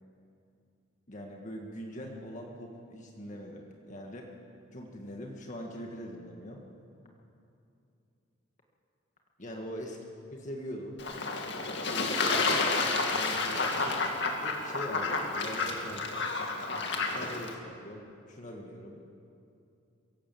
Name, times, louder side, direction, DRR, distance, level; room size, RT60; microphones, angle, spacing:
voice 1, 1.1-4.3 4.7-6.7 9.4-10.0 10.3-11.0 11.8-14.0 14.4-16.1 17.1-19.0, equal, 40° left, 0 dB, 1.8 m, -42 dB
Fowl / Bird / Water, 11.0-17.5, left 3 dB, 60° left, 2.2 m, -30 dB
23.0 x 16.5 x 7.7 m, 2.6 s
head